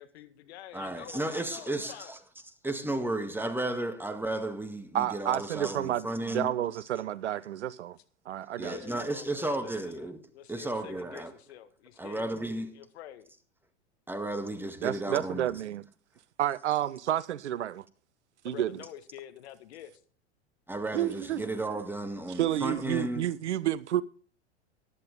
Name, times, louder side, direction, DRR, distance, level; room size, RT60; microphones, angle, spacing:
voice 1, 0.0-2.1 8.6-12.3 12.7-13.3 18.5-19.9, left 11 dB, 65° left, 1.7 m, -47 dB
voice 2, 0.7-2.2 2.6-6.5 8.6-10.2 10.5-11.3 12.0-12.7 14.1-15.5 20.7-23.2, right 1 dB, 5° right, 1.8 m, -33 dB
voice 3, 4.9-8.0 8.3-9.0 14.8-15.8 16.4-17.8 18.4-18.8 20.9-21.4 22.3-24.0, right 12 dB, 80° right, 0.6 m, -30 dB
15.0 x 11.0 x 3.7 m
hypercardioid pair, 90°, 34 cm